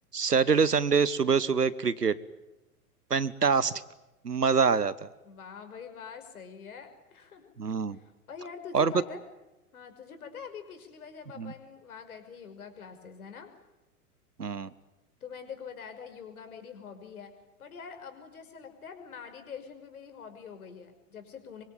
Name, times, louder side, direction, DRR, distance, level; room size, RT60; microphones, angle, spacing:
voice 1, 0.1-2.2 3.1-3.8 4.2-5.1 7.6-8.0 8.7-8.9 11.4-11.5 14.4-14.7, right 5 dB, 85° right, 18 dB, 1.3 m, -25 dB
voice 2, 5.2-7.5 8.3-9.2 9.7-13.5 15.2-17.3 17.6-21.6, left 6 dB, 65° left, 7 dB, 5.9 m, -44 dB
25.0 x 24.5 x 9.2 m, 1.0 s
figure-of-eight pair, 100°, 46 cm